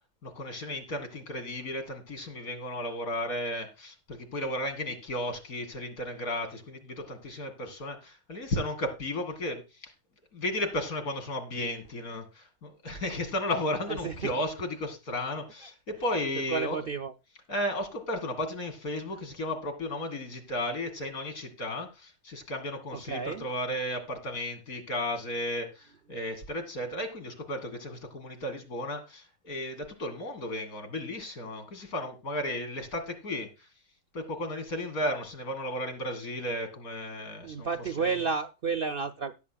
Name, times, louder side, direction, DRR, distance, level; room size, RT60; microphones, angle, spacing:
voice 1, 0.2-9.9 10.3-16.9 17.5-33.5 34.1-38.2, left 1 dB, 75° left, 5 dB, 2.9 m, -34 dB
voice 2, 13.9-14.3 16.5-17.1 22.9-23.4 37.4-39.3, right 5 dB, 55° right, 8 dB, 0.6 m, -31 dB
17.0 x 8.3 x 2.3 m, 0.28 s
omnidirectional pair, 1.6 m